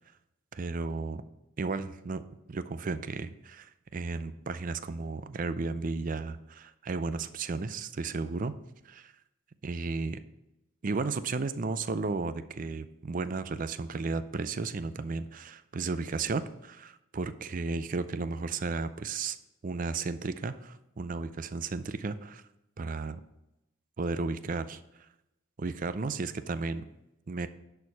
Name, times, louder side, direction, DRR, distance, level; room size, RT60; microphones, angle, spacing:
voice 1, 0.5-1.2 1.6-2.2 2.5-8.5 8.8-9.1 9.6-10.2 10.8-19.4 19.6-22.4 22.8-23.2 24.0-24.8 25.6-26.9 27.3-27.5, right 4 dB, 40° right, 12 dB, 0.4 m, -34 dB
11.0 x 4.5 x 5.4 m, 0.90 s
head